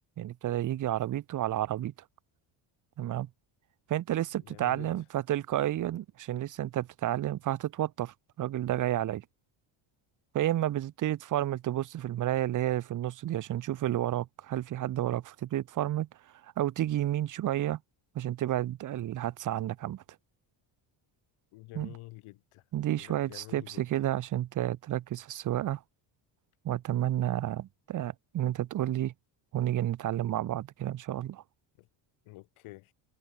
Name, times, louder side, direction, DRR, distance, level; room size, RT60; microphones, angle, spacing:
voice 1, 0.2-1.9 3.0-3.3 3.9-9.2 10.3-16.1 16.4-17.8 18.1-20.0 21.7-22.0 22.7-25.8 26.6-29.1 29.5-31.4, right 13 dB, 40° right, 0.7 m, -31 dB
voice 2, 4.5-4.9 21.5-22.6 22.9-23.8 32.3-32.9, left 20 dB, 80° left, 2.4 m, -48 dB
cardioid pair, 110°, 48 cm